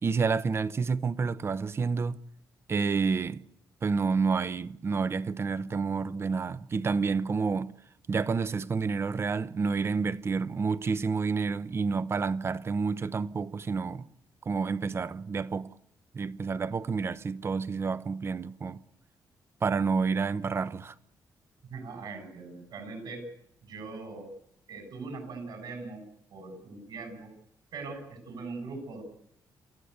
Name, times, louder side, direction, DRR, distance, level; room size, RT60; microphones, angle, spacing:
voice 1, 0.0-2.2 2.7-3.4 3.8-7.7 8.1-14.1 14.5-15.7 16.1-18.8 19.6-20.9, right 5 dB, 35° right, 0.8 m, -29 dB
voice 2, 21.6-23.3 23.6-24.3 24.7-27.3 27.7-29.0, right 3 dB, 75° right, 7.4 m, -41 dB
28.5 x 14.5 x 8.2 m
cardioid pair, 125°, 7 cm